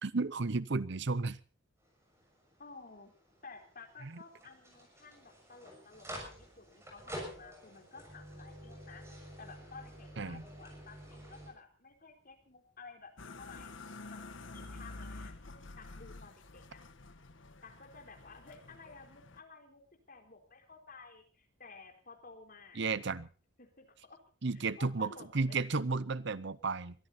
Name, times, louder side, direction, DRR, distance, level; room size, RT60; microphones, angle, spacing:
voice 1, 0.0-1.4 10.2-10.4 22.8-23.3 24.4-26.9, right 3 dB, 60° right, 17 dB, 0.8 m, -33 dB
sound 1, 1.8-11.5, equal, 15° right, 6.8 m, -49 dB
voice 2, 2.6-3.1 3.4-13.7 14.1-16.8 17.6-19.8 20.1-22.8 23.6-24.2 24.5-25.6, left 4 dB, 45° left, 3 dB, 4.1 m, -54 dB
sound 2, 13.2-19.4, left 2 dB, 70° left, 1.4 m, -49 dB
22.5 x 13.5 x 4.3 m, 0.37 s
head